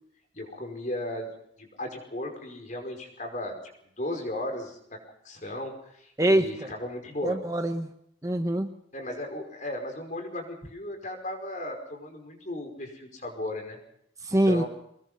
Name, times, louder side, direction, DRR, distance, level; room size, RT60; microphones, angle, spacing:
voice 1, 0.3-1.3 1.6-3.5 4.0-5.0 5.2-7.4 8.9-13.8 14.5-14.7, left 1 dB, 40° left, 3 dB, 5.3 m, -35 dB
voice 2, 6.2-6.7 7.2-7.9 8.2-8.7 14.2-14.6, right 1 dB, 20° right, 6 dB, 1.0 m, -24 dB
24.0 x 20.5 x 5.8 m, 0.72 s
head